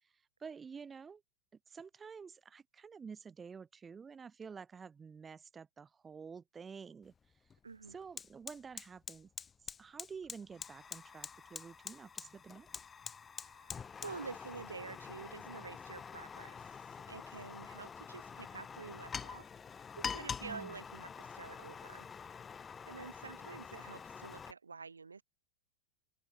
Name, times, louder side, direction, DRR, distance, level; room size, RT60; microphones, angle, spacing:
voice 1, 0.4-1.2 1.7-7.1 7.9-9.3 9.8-12.7 20.4-20.8, right 6 dB, 15° right, 3.9 m, -50 dB
Fire, 7.0-7.2 7.5-24.5, left 6 dB, 20° left, 1.7 m, -46 dB
voice 2, 7.6-8.0 13.4-19.5 20.0-22.1 22.9-25.2, right 4 dB, 75° right, 2.1 m, -49 dB
open air
figure-of-eight pair, 90°, 0 cm